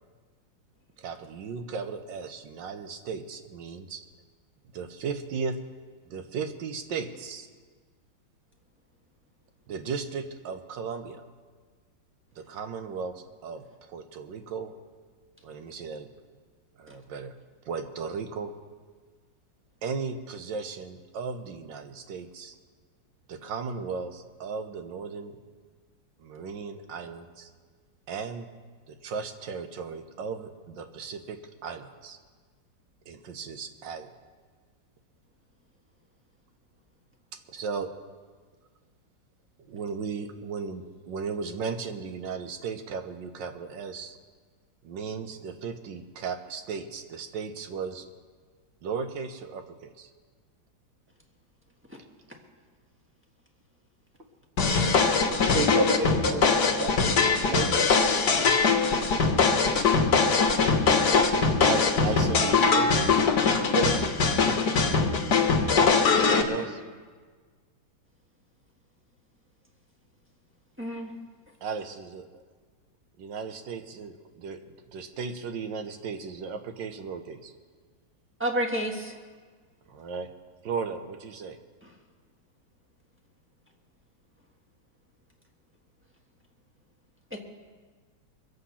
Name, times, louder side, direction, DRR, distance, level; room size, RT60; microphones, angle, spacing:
voice 1, 1.0-4.0 4.7-5.6 6.1-7.5 9.7-11.2 12.4-14.7 15.4-16.1 16.8-17.4 17.7-18.5 19.8-22.5 23.3-25.4 26.2-27.5 28.1-28.5 28.9-32.2 33.1-34.1 37.5-37.9 39.7-44.2 44.8-48.1 48.8-50.1 61.6-63.2 65.6-66.8 71.6-72.4 73.2-74.6 74.9-77.5 79.9-80.3 80.6-81.6, right 5 dB, 75° right, 8 dB, 1.6 m, -36 dB
sound 1, 54.6-66.4, left 5 dB, 60° left, 1.7 m, -22 dB
voice 2, 55.1-58.5 63.7-64.1, right 2 dB, 35° right, 2 dB, 1.6 m, -31 dB
voice 3, 70.8-71.1 78.4-79.1 87.3-87.4, right 1 dB, 5° right, 0 dB, 1.2 m, -29 dB
23.5 x 8.0 x 5.7 m, 1.5 s
omnidirectional pair, 2.1 m